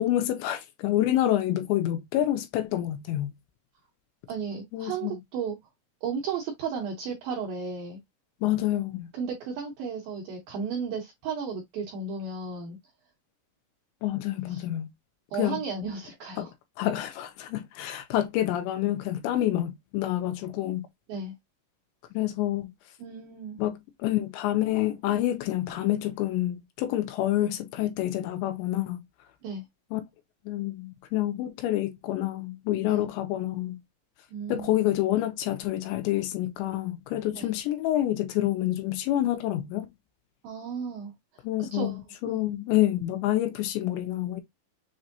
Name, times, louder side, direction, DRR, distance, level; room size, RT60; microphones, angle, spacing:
voice 1, 0.0-3.3 4.7-5.1 8.4-9.1 14.0-14.9 15.4-15.6 16.4-16.5 16.8-20.9 22.1-22.7 23.6-29.0 29.9-30.0 30.5-33.8 34.5-39.9 41.4-41.9 42.2-44.4, left 13 dB, 80° left, 2.6 m, -27 dB
voice 2, 4.3-5.6 6.0-8.0 9.1-12.8 14.5-14.6 15.3-16.5 21.1-21.3 23.0-23.6 29.4-29.6 32.9-33.0 34.3-34.7 37.3-37.5 40.4-42.0 42.3-42.4, right 5 dB, 90° right, 2.0 m, -34 dB
7.3 x 2.5 x 2.6 m
omnidirectional pair, 5.6 m